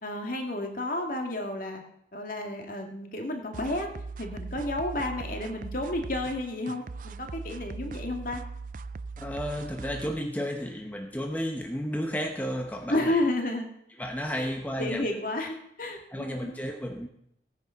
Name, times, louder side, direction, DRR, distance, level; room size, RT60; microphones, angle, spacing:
voice 1, 0.0-1.8 2.1-3.9 4.2-8.4 12.9-13.6 14.4-14.5 14.8-16.5, left 1 dB, 45° left, 3 dB, 2.2 m, -31 dB
sound 1, 3.5-10.2, right 4 dB, 45° right, 0.4 m, -40 dB
voice 2, 9.2-13.2 14.0-15.1 16.1-17.1, equal, 10° left, 3 dB, 0.9 m, -32 dB
17.0 x 9.5 x 5.7 m, 0.75 s
head